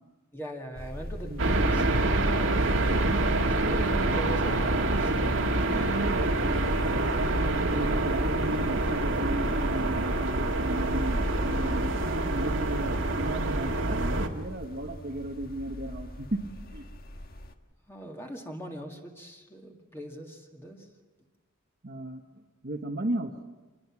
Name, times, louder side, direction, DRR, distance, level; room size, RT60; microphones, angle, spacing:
voice 1, 0.3-1.9 3.4-6.0 17.9-20.9, right 1 dB, 10° left, 1 dB, 2.1 m, -41 dB
sound 1, 0.7-17.5, equal, 45° left, 1.3 m, -41 dB
voice 2, 1.2-1.9 5.7-6.3 7.1-16.8 21.8-23.3, right 1 dB, 50° right, 0 dB, 1.3 m, -35 dB
sound 2, 1.4-14.3, right 2 dB, 75° right, 1.9 m, -26 dB
26.5 x 20.5 x 6.1 m, 1.3 s
head